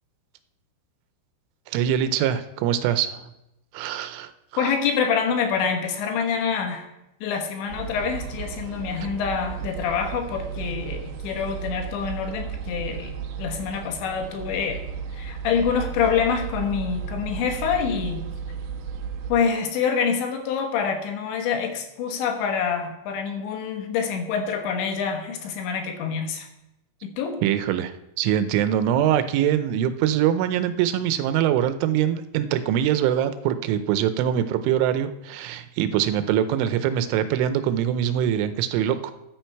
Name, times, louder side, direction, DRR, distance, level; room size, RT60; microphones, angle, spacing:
voice 1, 1.7-3.3 3.7-4.3 27.4-27.9 28.2-39.1, right 10 dB, 90° right, 11 dB, 3.3 m, -23 dB
voice 2, 4.6-6.9 7.2-14.8 15.1-18.2 19.3-26.5 27.0-27.4, left 6 dB, 75° left, 5 dB, 3.4 m, -26 dB
sound 1, 7.7-19.3, right 7 dB, 75° right, 2.9 m, -34 dB
13.5 x 9.7 x 4.6 m, 0.89 s
omnidirectional pair, 5.4 m